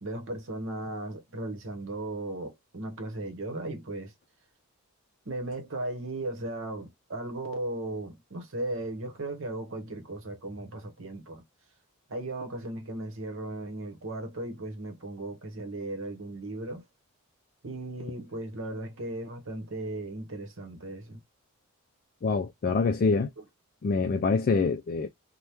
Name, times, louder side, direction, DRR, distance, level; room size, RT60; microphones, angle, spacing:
voice 1, 0.0-4.1 5.3-11.4 12.1-16.8 17.6-21.2, right 2 dB, 60° right, 0.9 m, -36 dB
voice 2, 22.2-23.3 23.8-25.1, left 4 dB, 40° left, 0.3 m, -25 dB
2.9 x 2.1 x 3.3 m
head